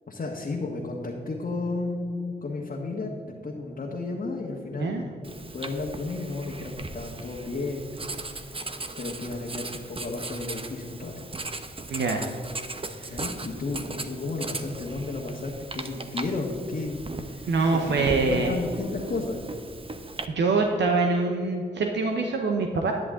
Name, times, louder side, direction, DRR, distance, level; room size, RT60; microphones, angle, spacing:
voice 1, 0.1-5.2 5.5-7.9 8.3-8.5 9.0-11.3 13.1-19.4, left 3 dB, 50° left, -2 dB, 1.5 m, -33 dB
Writing, 5.2-20.3, right 2 dB, 30° right, 0.9 m, -38 dB
voice 2, 11.9-12.3 13.0-13.1 17.5-18.5 20.3-22.9, right 3 dB, 70° right, 2 dB, 0.9 m, -24 dB
10.5 x 10.5 x 3.8 m, 2.4 s
supercardioid pair, 45°, 19 cm